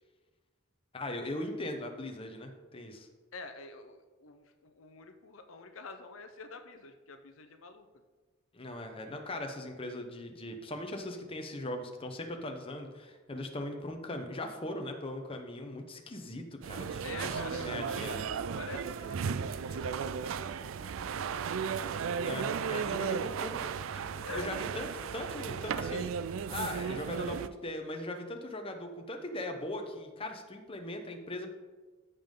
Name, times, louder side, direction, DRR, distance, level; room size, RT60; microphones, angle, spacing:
voice 1, 0.9-3.1 8.5-18.2 22.2-26.1 26.5-31.5, left 1 dB, 25° left, 4 dB, 0.9 m, -39 dB
voice 2, 3.3-7.9 17.0-17.7 18.6-21.5 24.2-24.5, left 4 dB, 70° left, 7 dB, 0.7 m, -47 dB
sound 1, 16.6-27.5, right 6 dB, 70° right, 0.4 m, -35 dB
14.0 x 5.4 x 3.8 m, 1.4 s
head